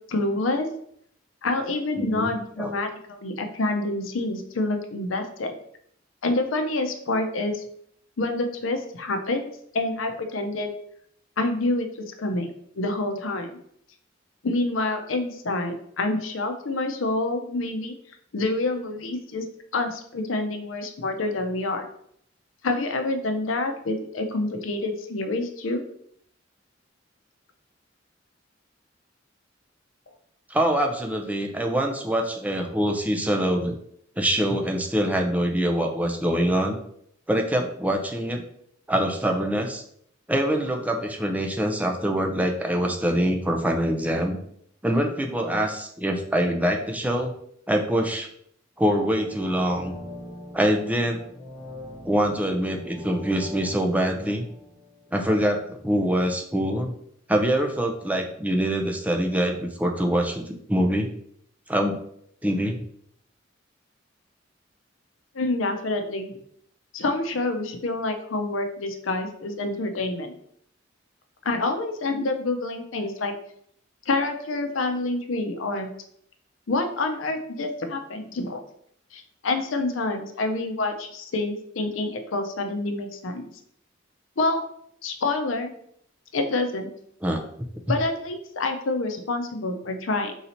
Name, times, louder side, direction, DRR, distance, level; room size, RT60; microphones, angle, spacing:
voice 1, 0.1-0.7 1.4-5.5 6.2-7.6 8.2-9.5 9.7-10.7 11.4-13.5 14.4-17.9 18.3-19.4 19.7-21.9 22.6-25.8 65.3-66.3 66.9-70.4 71.4-73.3 74.1-75.9 76.7-78.6 79.1-83.5 84.4-84.6 85.0-85.7 86.3-86.9 87.9-90.3, left 2 dB, 85° left, 6 dB, 0.6 m, -27 dB
voice 2, 2.0-2.7 30.5-33.7 34.2-36.8 37.3-38.4 38.9-39.8 40.3-44.4 44.8-47.3 47.7-48.3 48.8-50.0 50.5-51.2 52.0-54.4 55.1-56.9 57.3-61.1 61.7-62.0 62.4-62.8 87.2-87.4, equal, 10° right, 2 dB, 0.5 m, -24 dB
sound 1, 49.1-55.9 56.3-56.4, left 1 dB, 20° left, 0.8 m, -43 dB
3.9 x 2.8 x 4.3 m, 0.68 s
head